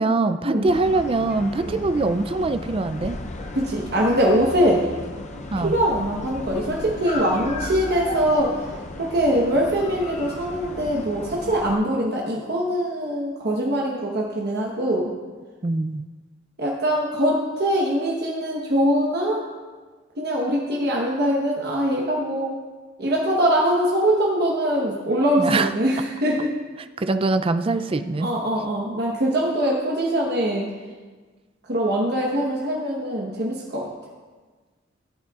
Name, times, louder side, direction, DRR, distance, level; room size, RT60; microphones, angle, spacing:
voice 1, 0.0-3.2 5.5-5.7 15.6-16.0 25.4-25.7 27.0-28.3, right 3 dB, 30° right, 10 dB, 0.4 m, -23 dB
sound 1, 0.7-11.8, left 2 dB, 35° left, 0.6 m, -35 dB
voice 2, 3.5-4.8 5.6-8.7 9.0-15.1 16.6-19.5 20.2-22.6 23.0-26.5 28.2-30.7 31.7-33.9, equal, 55° right, -3 dB, 1.1 m, -23 dB
14.5 x 8.8 x 2.4 m, 1.4 s
head